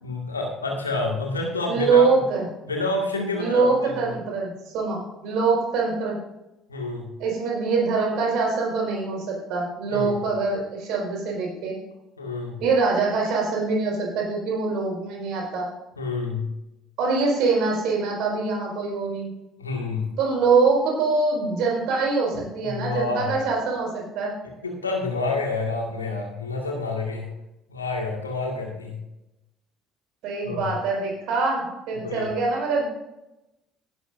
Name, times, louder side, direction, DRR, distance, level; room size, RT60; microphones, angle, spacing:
voice 1, 0.0-2.1 2.7-4.1 6.7-7.1 9.9-10.1 12.2-12.6 16.0-16.5 19.6-20.1 22.3-23.3 24.4-27.3 27.7-29.0 30.4-30.7 31.9-32.3, left 3 dB, 90° left, 0 dB, 2.0 m, -29 dB
voice 2, 1.7-2.5 3.4-6.2 7.2-11.8 12.6-15.7 17.0-19.3 20.2-24.3 30.2-32.8, right 4 dB, 60° right, -1 dB, 4.9 m, -24 dB
16.5 x 11.5 x 2.7 m, 0.94 s
figure-of-eight pair, 55°, 0 cm